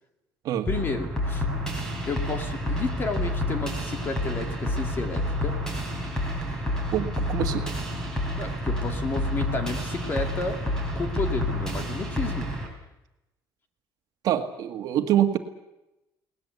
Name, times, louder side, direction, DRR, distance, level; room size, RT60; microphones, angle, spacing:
voice 1, 0.7-1.5 2.1-5.6 8.4-10.6 10.9-12.5, left 3 dB, 30° left, 6 dB, 2.4 m, -31 dB
sound 1, 0.7-12.7, left 1 dB, 5° left, 4.8 m, -29 dB
voice 2, 6.9-7.7 14.2-15.4, right 11 dB, 55° right, 6 dB, 1.8 m, -25 dB
22.0 x 19.0 x 8.3 m, 0.92 s
cardioid pair, 170°, 8 cm